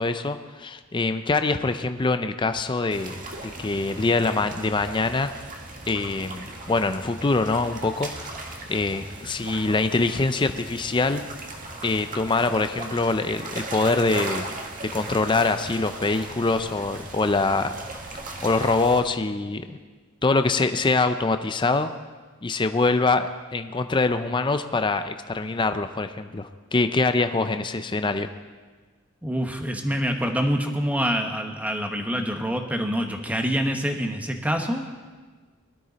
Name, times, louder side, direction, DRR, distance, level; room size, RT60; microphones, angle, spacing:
voice 1, 0.0-3.2 3.6-5.3 5.9-8.1 8.7-11.2 11.8-14.5 14.9-17.7 18.4-19.8 20.2-21.9 22.4-28.3, left 3 dB, 20° left, 9 dB, 0.5 m, -24 dB
sound 1, 2.9-19.0, right 2 dB, 40° right, 1.7 m, -37 dB
voice 2, 29.2-34.8, equal, 5° right, 4 dB, 1.2 m, -26 dB
20.0 x 12.5 x 4.1 m, 1.4 s
head